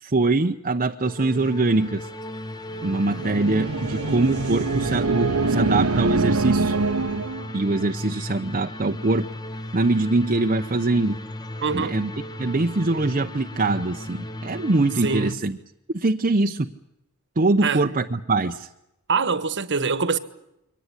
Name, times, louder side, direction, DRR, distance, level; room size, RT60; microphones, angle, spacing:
voice 1, 0.0-2.1 2.8-6.8 7.5-9.3 9.7-11.2 11.7-12.1 12.4-15.6 15.9-16.7 17.4-18.7, right 2 dB, 40° right, 0.8 m, -23 dB
sound 1, 1.0-15.4, left 1 dB, 20° left, 1.2 m, -36 dB
sound 2, 2.9-7.5, right 3 dB, 80° right, 1.0 m, -24 dB
voice 2, 11.6-11.9 15.0-15.4 17.6-18.0 19.1-20.2, right 5 dB, 55° right, 1.4 m, -24 dB
23.5 x 18.5 x 9.8 m
head